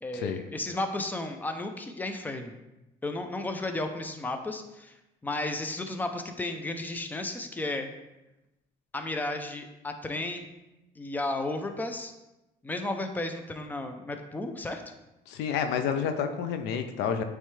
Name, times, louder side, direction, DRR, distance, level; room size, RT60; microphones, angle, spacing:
voice 1, 0.0-2.5 3.0-5.0 5.2-7.9 8.9-10.4 11.0-12.1 12.6-14.8, left 2 dB, 10° left, 6 dB, 0.6 m, -33 dB
voice 2, 15.3-17.2, left 7 dB, 90° left, 7 dB, 0.6 m, -29 dB
8.8 x 3.3 x 3.2 m, 0.98 s
cardioid pair, 110°, 17 cm